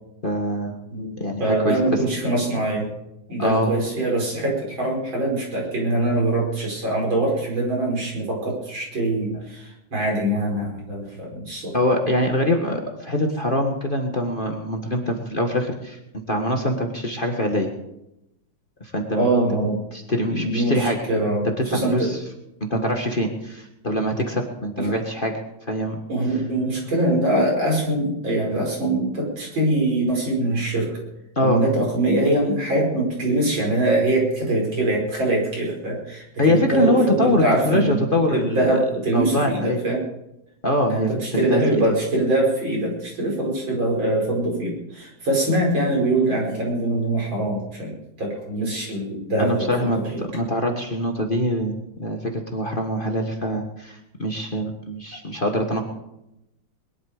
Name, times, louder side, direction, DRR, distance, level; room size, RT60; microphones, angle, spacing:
voice 1, 0.2-0.7 1.2-2.0 3.4-3.7 11.7-17.7 18.8-19.3 19.9-21.0 21.7-22.2 22.7-25.3 25.7-26.0 26.3-26.4 31.3-31.6 36.4-38.8 39.1-39.8 40.6-41.8 49.4-50.0 50.3-55.8, left 1 dB, 30° left, 3 dB, 1.6 m, -24 dB
voice 2, 1.4-2.9 3.3-11.8 19.1-19.8 20.3-22.1 24.8-24.9 26.1-31.0 31.4-38.0 38.3-40.0 40.9-50.2, right 1 dB, 75° right, -2 dB, 5.9 m, -23 dB
21.0 x 12.0 x 5.0 m, 0.87 s
omnidirectional pair, 2.1 m